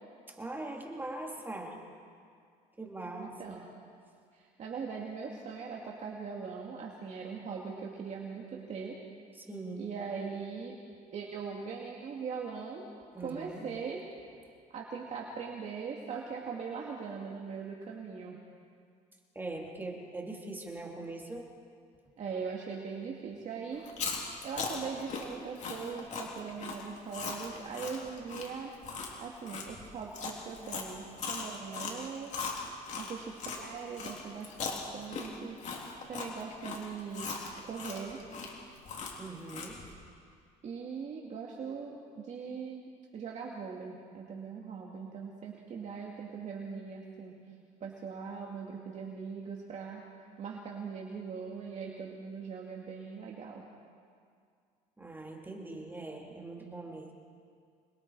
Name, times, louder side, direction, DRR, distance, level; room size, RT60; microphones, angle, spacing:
voice 1, 0.3-1.8 2.8-3.6 9.4-9.9 13.1-13.7 19.3-21.5 39.2-39.8 55.0-57.1, right 2 dB, 10° right, 0 dB, 2.9 m, -41 dB
voice 2, 3.2-3.6 4.3-9.0 9.8-10.7 11.1-12.8 13.2-14.0 14.7-18.4 22.2-23.8 24.1-28.7 29.2-32.3 32.9-34.6 34.9-35.6 36.1-37.3 37.6-38.2 40.6-47.3 47.8-50.0 50.4-53.7, right 5 dB, 45° right, -2 dB, 2.4 m, -40 dB
Chewing mastication, 23.8-33.6 34.0-39.9, left 4 dB, 50° left, 3.6 m, -39 dB
26.0 x 21.5 x 4.8 m, 2.2 s
cardioid pair, 110°, 16 cm